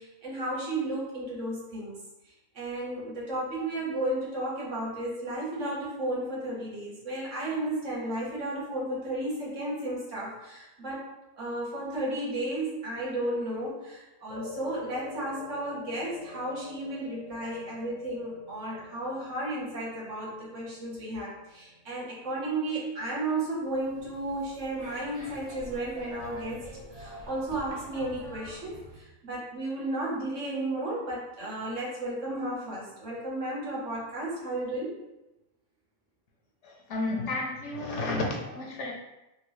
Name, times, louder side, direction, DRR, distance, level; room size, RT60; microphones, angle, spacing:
voice 1, 0.0-1.9 2.5-11.0 11.4-26.6 26.9-35.0, right 1 dB, 65° right, -6 dB, 1.4 m, -33 dB
sound 1, 14.3-22.8, left 3 dB, 90° left, 1.2 m, -47 dB
sound 2, 23.6-29.0, right 1 dB, 30° right, 0.5 m, -46 dB
voice 2, 36.6-38.9, left 2 dB, 65° left, 0 dB, 0.9 m, -32 dB
3.6 x 2.6 x 3.1 m, 0.96 s
omnidirectional pair, 1.4 m